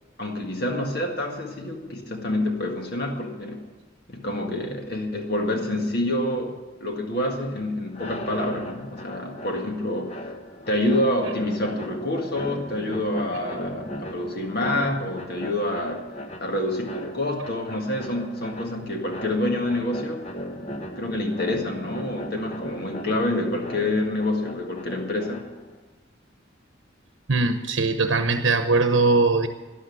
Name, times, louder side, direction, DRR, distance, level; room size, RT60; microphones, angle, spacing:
voice 1, 0.2-3.6 4.1-10.2 10.7-16.1 16.4-20.3 21.0-25.5, left 1 dB, 55° left, 2 dB, 1.8 m, -27 dB
sound 1, 7.9-25.8, equal, 35° left, 1.2 m, -37 dB
voice 2, 27.3-29.5, right 3 dB, 70° right, 7 dB, 0.9 m, -21 dB
13.0 x 11.5 x 8.5 m, 1.3 s
head